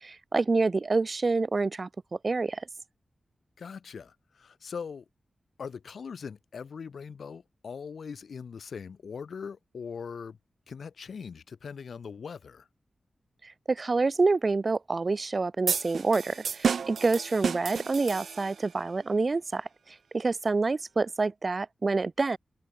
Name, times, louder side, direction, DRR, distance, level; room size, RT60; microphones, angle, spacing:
voice 1, 0.0-1.9 2.2-2.6 13.4-19.7 20.1-22.4, right 3 dB, 35° right, 0.9 m, -27 dB
voice 2, 3.6-5.0 5.6-10.4 10.7-12.7, left 6 dB, 75° left, 1.4 m, -41 dB
sound 1, 15.7-18.7, right 6 dB, 90° right, 0.8 m, -31 dB
wide cardioid pair, 155°, 0 cm